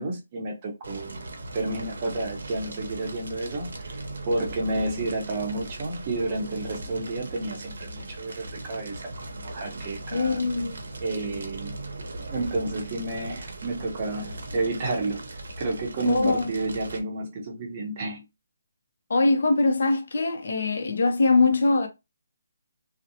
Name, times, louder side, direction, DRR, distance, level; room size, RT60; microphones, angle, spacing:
voice 1, 0.0-10.4 11.0-11.8 12.3-15.3 15.6-18.2, right 2 dB, 25° right, 0.6 m, -31 dB
Fire, 0.8-17.0, right 2 dB, 65° right, 0.7 m, -39 dB
voice 2, 10.1-10.8 16.0-16.5 19.1-21.9, left 3 dB, 55° left, 0.6 m, -22 dB
2.7 x 2.0 x 2.6 m
hypercardioid pair, 175°, 0 cm